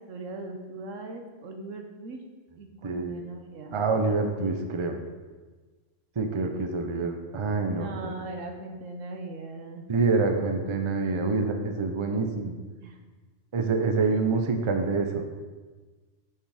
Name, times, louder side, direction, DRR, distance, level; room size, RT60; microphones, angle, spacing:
voice 1, 0.1-2.2 2.6-3.8 7.7-9.9 12.1-12.2 12.8-13.0, right 2 dB, 80° right, 4 dB, 1.3 m, -39 dB
voice 2, 2.8-3.2 3.7-5.0 6.2-8.2 9.9-12.5 13.5-15.2, right 3 dB, 30° right, 5 dB, 0.6 m, -26 dB
6.8 x 6.0 x 4.9 m, 1.3 s
omnidirectional pair, 1.3 m